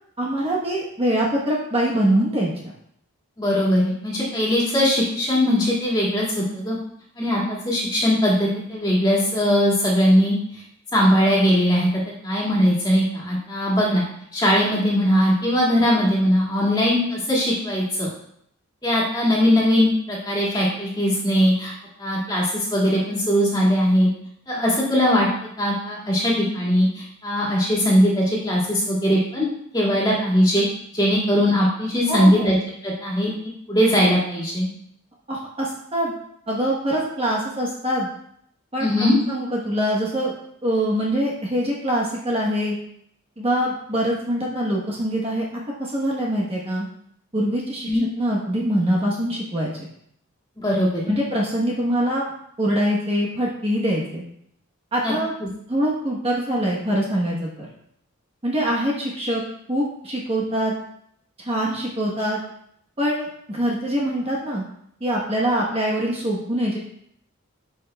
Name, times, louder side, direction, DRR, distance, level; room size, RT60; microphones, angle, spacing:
voice 1, 0.2-2.7 32.1-32.5 35.3-36.1 36.5-38.1 38.7-38.9 39.3-40.3 40.6-42.8 43.4-45.5 45.8-46.9 47.3-49.7 51.1-52.3 52.6-54.2 54.9-55.3 55.7-57.7 58.4-59.4 59.7-60.7 61.4-62.4 63.0-64.6 65.0-66.8, equal, 25° right, -4 dB, 1.0 m, -24 dB
voice 2, 3.4-6.8 7.2-10.4 10.9-11.9 12.2-14.0 14.3-18.1 18.8-21.7 22.0-24.1 24.5-25.3 25.6-29.5 29.7-30.6 30.9-32.6 32.8-34.7 38.8-39.2 47.8-48.0 50.6-51.0 55.0-55.1, equal, 20° left, -5 dB, 2.0 m, -20 dB
10.0 x 5.4 x 2.3 m, 0.70 s
head